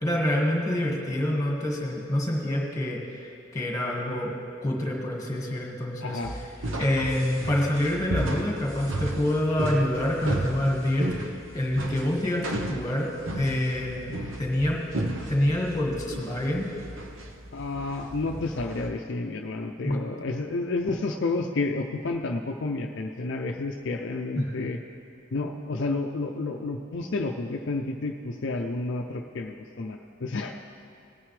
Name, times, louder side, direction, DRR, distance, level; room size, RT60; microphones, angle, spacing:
voice 1, 0.0-4.3 4.6-6.2 6.8-14.1 14.4-14.8 15.3-16.7 19.8-20.0 24.3-24.7, left 1 dB, 15° left, -1 dB, 1.6 m, -27 dB
voice 2, 6.0-6.3 17.5-24.8 25.3-30.5, left 3 dB, 55° left, 2 dB, 0.5 m, -30 dB
sound 1, 6.2-18.9, right 1 dB, 70° right, 0.9 m, -34 dB
18.5 x 9.3 x 3.3 m, 2.5 s
head